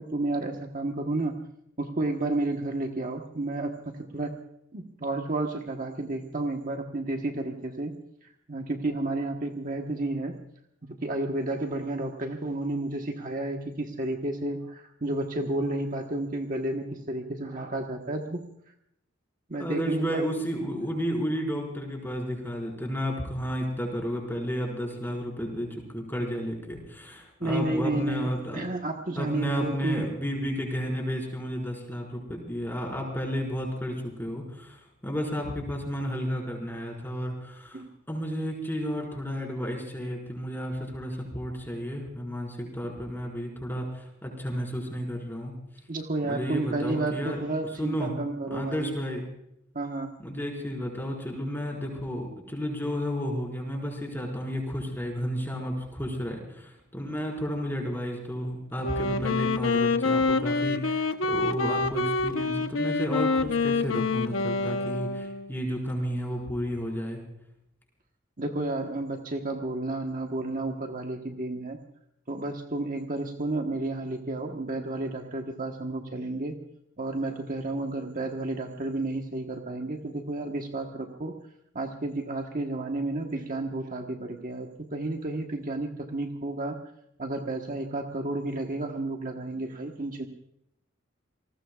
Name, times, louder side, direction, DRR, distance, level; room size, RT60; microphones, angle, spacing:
voice 1, 0.0-1.4 1.8-4.3 4.7-7.9 8.5-10.4 10.8-18.4 19.5-20.2 27.4-30.1 37.7-37.9 45.9-48.9 49.7-50.2 68.4-71.8 72.3-76.6 77.0-81.4 81.7-86.8 87.2-90.3, right 2 dB, 40° right, 2 dB, 1.3 m, -31 dB
voice 2, 19.6-28.6 29.1-45.5 46.2-47.4 47.8-48.1 48.5-49.3 50.2-67.2, equal, 10° left, 0 dB, 5.2 m, -32 dB
Wind instrument woodwind instrument, 58.8-65.6, left 3 dB, 75° left, 1.0 m, -27 dB
28.5 x 19.5 x 2.4 m, 0.77 s
head